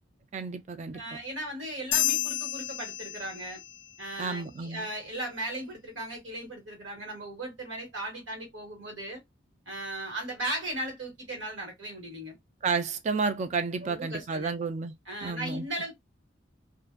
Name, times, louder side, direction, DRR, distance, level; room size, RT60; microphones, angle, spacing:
voice 1, 0.3-1.0 4.2-4.9 12.6-14.9 15.2-15.6, right 4 dB, 40° right, 0.3 m, -31 dB
voice 2, 0.9-3.6 4.0-9.2 9.7-12.4 13.8-14.5 15.1-15.9, right 1 dB, 80° right, 1.3 m, -37 dB
sound 1, 1.9-3.8, left 13 dB, 75° left, 0.3 m, -30 dB
2.5 x 2.2 x 2.4 m
head